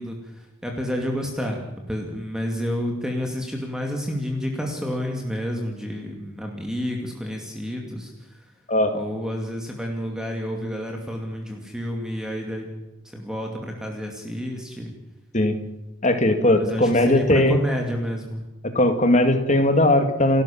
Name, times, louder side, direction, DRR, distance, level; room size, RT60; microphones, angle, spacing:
voice 1, 0.0-1.6 1.9-8.1 8.9-12.7 13.1-14.9 16.6-18.4, equal, 5° right, 1 dB, 2.5 m, -29 dB
voice 2, 8.7-9.0 15.3-15.6 16.0-17.6 18.7-20.4, left 1 dB, 35° left, 6 dB, 2.4 m, -19 dB
29.5 x 12.5 x 7.3 m, 0.97 s
head